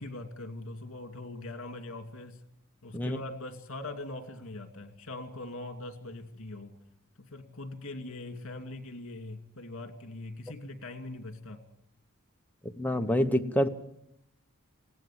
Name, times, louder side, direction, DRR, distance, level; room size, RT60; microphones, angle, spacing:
voice 1, 0.0-2.4 2.8-6.7 7.3-11.6, left 2 dB, 65° left, 7 dB, 2.5 m, -41 dB
voice 2, 12.8-13.7, equal, 10° left, 5 dB, 1.1 m, -26 dB
20.5 x 17.0 x 7.5 m, 0.76 s
head